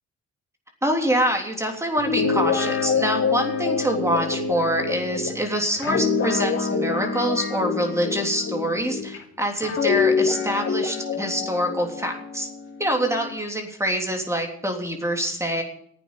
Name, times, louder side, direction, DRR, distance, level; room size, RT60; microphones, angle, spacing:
voice 1, 0.8-12.5 12.8-15.6, equal, 10° right, 2 dB, 3.3 m, -25 dB
Guitar, 2.0-9.2 9.6-13.3, left 5 dB, 45° left, 3.0 m, -26 dB
12.0 x 9.1 x 9.1 m, 0.66 s
cardioid pair, 90°, 30 cm